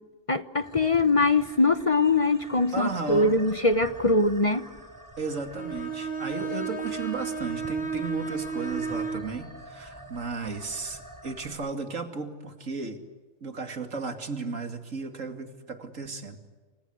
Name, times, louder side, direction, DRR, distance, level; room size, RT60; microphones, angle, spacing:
voice 1, 0.3-4.7, left 2 dB, 30° left, 12 dB, 0.9 m, -22 dB
sound 1, 0.6-11.5, right 1 dB, 15° right, 5.3 m, -47 dB
voice 2, 2.7-3.4 5.2-13.0 13.4-16.4, right 4 dB, 90° right, 7 dB, 2.9 m, -34 dB
Bowed string instrument, 5.5-9.3, right 5 dB, 50° left, 2.6 m, -32 dB
28.5 x 26.0 x 8.0 m, 1.4 s
omnidirectional pair, 1.3 m